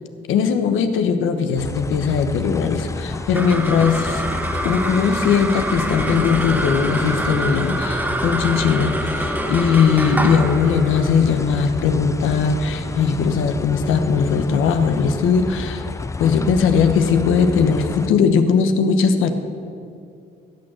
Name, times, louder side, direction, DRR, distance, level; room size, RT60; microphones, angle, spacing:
voice 1, 0.3-4.3 4.6-15.8 16.2-19.3, left 6 dB, 85° left, 7 dB, 1.1 m, -19 dB
sound 1, 1.6-18.1, left 3 dB, 15° left, 0.4 m, -30 dB
sound 2, 3.1-13.7, right 1 dB, 10° right, 1.2 m, -26 dB
16.0 x 6.5 x 7.6 m, 2.4 s
cardioid pair, 90°, 20 cm